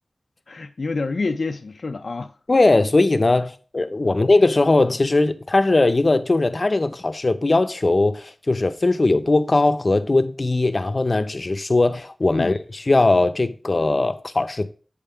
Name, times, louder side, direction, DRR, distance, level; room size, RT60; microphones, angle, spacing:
voice 1, 0.5-2.3 4.1-4.2 12.3-12.6, left 3 dB, 80° left, 0.3 m, -28 dB
voice 2, 2.5-14.7, left 2 dB, 50° left, 0.6 m, -19 dB
8.5 x 3.5 x 5.6 m
wide cardioid pair, 70°, 0 cm